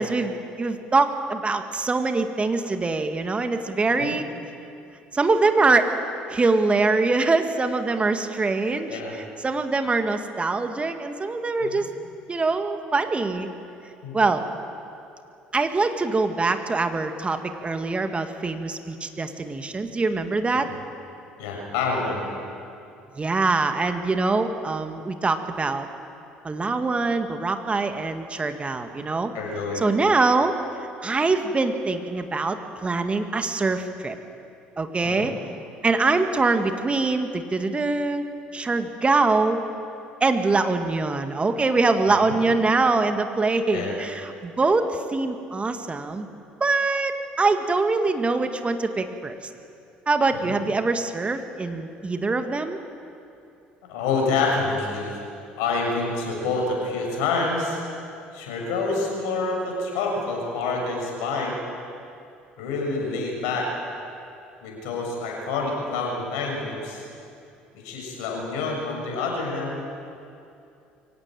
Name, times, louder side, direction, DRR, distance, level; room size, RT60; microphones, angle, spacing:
voice 1, 0.0-4.3 5.1-5.9 6.3-11.9 12.3-13.5 14.1-14.4 15.5-20.7 23.2-25.9 26.4-29.3 29.8-30.5 31.0-34.2 34.8-35.3 35.8-38.2 38.5-39.6 40.2-46.3 46.6-49.4 50.1-52.8, right 3 dB, 25° right, 7 dB, 1.8 m, -23 dB
voice 2, 3.8-4.1 8.9-9.1 11.6-11.8 14.0-14.2 20.5-20.6 21.4-22.3 29.3-29.8 35.0-35.3 42.1-42.4 43.7-44.0 50.3-50.5 53.9-55.2 55.6-57.8 58.3-61.6 62.6-63.7 64.6-67.1 67.7-69.8, left 3 dB, 70° left, 0 dB, 6.6 m, -27 dB
23.5 x 17.5 x 9.1 m, 2.6 s
hypercardioid pair, 60°, 5 cm